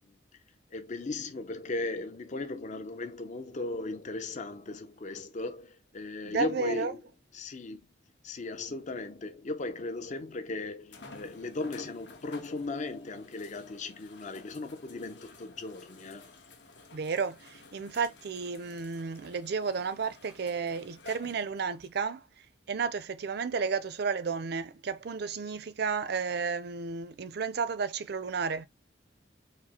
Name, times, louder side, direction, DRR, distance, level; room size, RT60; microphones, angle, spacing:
voice 1, 0.7-7.0 7.3-7.8 8.2-16.3, left 3 dB, 40° left, 0.5 m, -37 dB
voice 2, 6.2-6.9 16.9-22.2 22.7-28.7, right 5 dB, 60° right, 0.5 m, -32 dB
sound 1, 10.9-21.9 22.7-22.8 26.2-26.3, left 3 dB, 65° left, 1.0 m, -53 dB
4.8 x 2.0 x 4.2 m
head